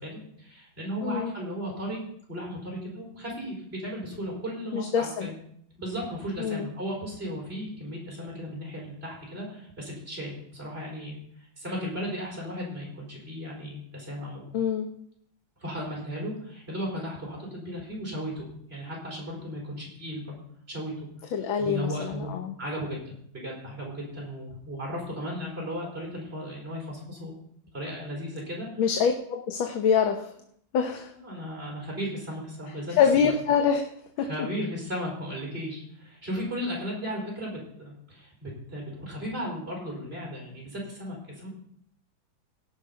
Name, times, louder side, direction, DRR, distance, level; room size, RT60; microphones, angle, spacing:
voice 1, 0.0-2.0 2.3-5.3 5.8-11.2 11.6-14.5 15.6-20.4 20.7-21.1 21.6-27.4 27.7-28.7 31.2-32.9 33.2-33.3 34.2-41.5, equal, 30° right, -2 dB, 4.7 m, -35 dB
voice 2, 1.0-1.3 4.7-5.3 6.4-6.7 14.5-14.9 21.3-22.5 28.8-30.3 30.7-31.1 33.0-33.9 34.2-34.5, left 7 dB, 75° left, 5 dB, 1.7 m, -25 dB
17.5 x 6.0 x 5.6 m, 0.67 s
omnidirectional pair, 2.2 m